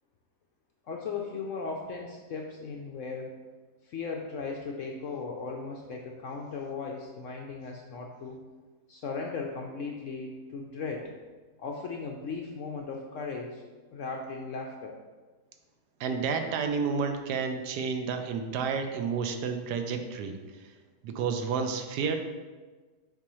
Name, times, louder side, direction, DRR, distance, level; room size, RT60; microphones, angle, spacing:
voice 1, 0.9-3.4 3.8-8.4 8.9-11.1 11.6-13.6 13.9-15.0, left 4 dB, 70° left, 0 dB, 0.7 m, -37 dB
voice 2, 16.0-20.4 21.0-22.2, right 5 dB, 80° right, 6 dB, 1.2 m, -30 dB
6.9 x 4.8 x 3.0 m, 1.3 s
omnidirectional pair, 1.8 m